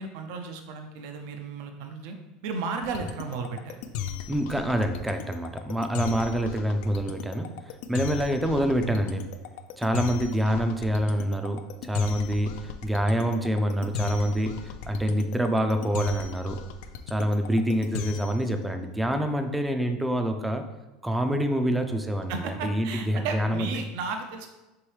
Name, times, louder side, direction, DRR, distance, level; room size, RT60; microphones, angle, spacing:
voice 1, 0.0-2.2 2.4-3.7 22.3-24.5, right 4 dB, 70° right, 5 dB, 0.5 m, -34 dB
sound 1, 2.8-18.5, left 9 dB, 70° left, 0.3 m, -36 dB
voice 2, 4.3-7.5 7.9-9.2 9.8-16.6 17.1-20.6 21.0-23.7, equal, 5° right, 6 dB, 0.4 m, -26 dB
4.6 x 3.1 x 3.2 m, 1.1 s
supercardioid pair, 125°, 0 cm